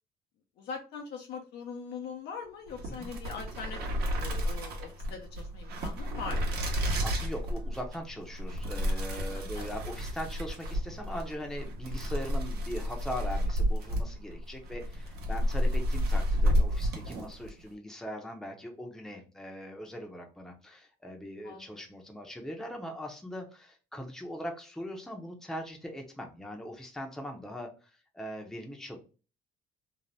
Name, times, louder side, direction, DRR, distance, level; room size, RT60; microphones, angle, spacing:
voice 1, 0.6-6.4 9.5-9.7 21.4-21.8, left 5 dB, 75° left, 2 dB, 0.6 m, -42 dB
sound 1, 2.7-17.6, equal, 70° right, 0.9 m, -31 dB
voice 2, 7.0-29.0, equal, ahead, 2 dB, 0.6 m, -40 dB
2.6 x 2.0 x 3.2 m, 0.35 s
cardioid pair, 110°, 17 cm